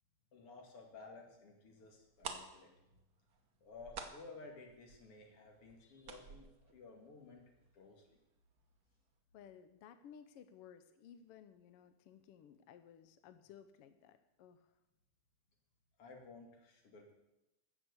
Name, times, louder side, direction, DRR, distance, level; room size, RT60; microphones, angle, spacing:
voice 1, 0.3-2.7 3.6-7.4 7.7-8.2 16.0-17.1, left 3 dB, 50° left, 2 dB, 2.9 m, -55 dB
sound 1, 1.9-2.0 2.2-7.8 8.0-8.1 8.6-8.8 9.1-9.2, right 5 dB, 90° right, 0.8 m, -50 dB
voice 2, 9.3-14.8, left 8 dB, 80° left, 10 dB, 1.3 m, -58 dB
14.5 x 6.3 x 8.1 m, 0.94 s
omnidirectional pair, 3.4 m